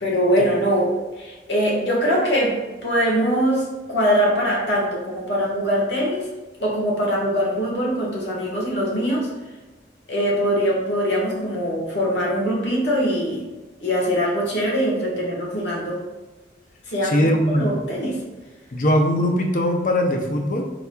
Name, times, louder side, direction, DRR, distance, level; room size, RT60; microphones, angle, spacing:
voice 1, 0.0-6.3 6.6-9.3 10.1-13.4 13.8-16.0 16.9-17.3 17.6-18.2, equal, 85° left, -3 dB, 1.4 m, -22 dB
voice 2, 17.0-17.6 18.7-20.7, equal, 45° left, 2 dB, 0.6 m, -20 dB
4.5 x 4.0 x 2.2 m, 1.2 s
head